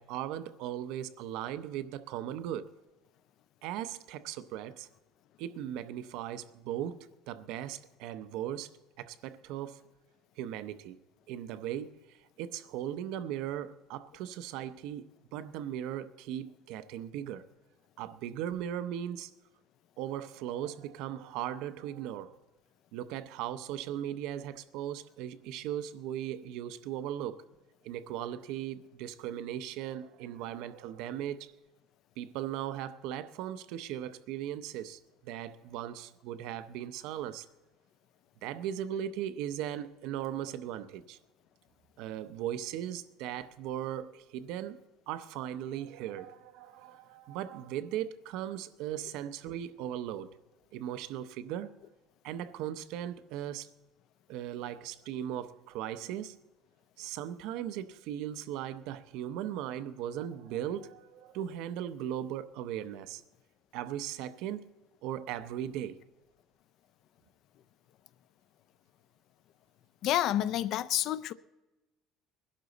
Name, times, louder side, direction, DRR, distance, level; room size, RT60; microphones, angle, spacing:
voice 1, 0.0-2.7 3.6-4.9 5.4-9.8 10.4-11.0 11.3-17.5 18.0-19.3 20.0-22.4 22.9-27.4 27.8-31.5 32.2-37.5 38.4-41.2 42.0-44.8 45.1-50.3 50.7-51.7 52.2-53.7 54.3-56.4 57.0-63.2 63.7-64.6 65.0-66.0, right 11 dB, 65° right, 0.7 m, -38 dB
voice 2, 70.0-71.3, left 12 dB, 45° left, 0.4 m, -29 dB
21.0 x 11.5 x 4.0 m
cardioid pair, 165°, 0 cm